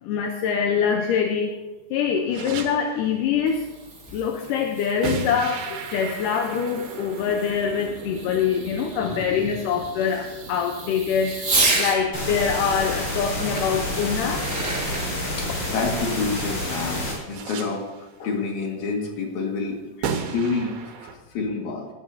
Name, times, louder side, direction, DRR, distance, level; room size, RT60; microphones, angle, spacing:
voice 1, 0.0-1.6 1.9-3.7 4.1-11.4 11.8-14.5, left 7 dB, 80° left, 4 dB, 2.3 m, -24 dB
sound 1, 2.3-3.2 5.0-15.9 17.3-18.1 20.0-21.2, right 6 dB, 85° right, 2.9 m, -37 dB
Fireworks, 3.2-12.0 13.6-13.7 14.2-15.0, right 2 dB, 25° right, 2.1 m, -31 dB
voice 2, 9.1-9.5 15.2-19.8 20.3-21.9, left 4 dB, 60° left, 0 dB, 3.1 m, -29 dB
sound 2, 12.1-17.1, left 1 dB, 40° left, 4.9 m, -28 dB
19.5 x 11.0 x 2.7 m, 1.1 s
omnidirectional pair, 4.0 m